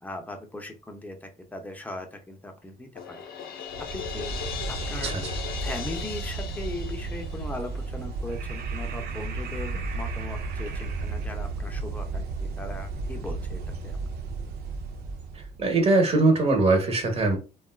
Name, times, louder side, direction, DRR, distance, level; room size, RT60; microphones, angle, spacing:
voice 1, 0.0-3.2 3.9-4.3 4.7-5.1 5.6-14.0, left 2 dB, 10° left, 4 dB, 0.6 m, -39 dB
Crash cymbal, 3.0-7.9, left 7 dB, 65° left, 0.6 m, -38 dB
sound 1, 3.7-15.6, right 3 dB, 70° right, 0.5 m, -33 dB
voice 2, 5.0-5.3 15.6-17.4, right 2 dB, 35° right, 4 dB, 1.0 m, -21 dB
3.4 x 2.3 x 2.3 m, 0.32 s
cardioid pair, 110°, 17 cm